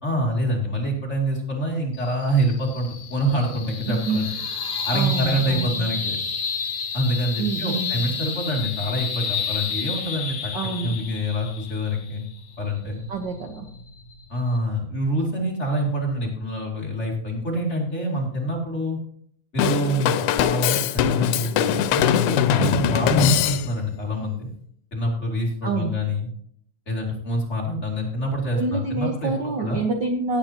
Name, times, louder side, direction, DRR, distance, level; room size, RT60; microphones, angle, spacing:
voice 1, 0.0-4.3 4.8-6.2 6.9-10.5 10.8-12.2 12.6-13.0 14.3-19.0 19.5-24.5 24.9-26.3 26.9-29.3 29.6-29.8, equal, 25° left, -2 dB, 2.5 m, -26 dB
sound 1, 1.9-14.6, left 6 dB, 65° left, 2.6 m, -31 dB
voice 2, 3.9-4.2 4.9-5.9 7.4-7.9 10.5-11.0 13.1-13.7 25.6-25.9 28.6-30.4, right 4 dB, 75° right, 3 dB, 1.0 m, -27 dB
Drum kit / Drum, 19.6-24.0, left 11 dB, 85° left, 2.1 m, -21 dB
17.5 x 8.8 x 2.9 m, 0.64 s
omnidirectional pair, 3.5 m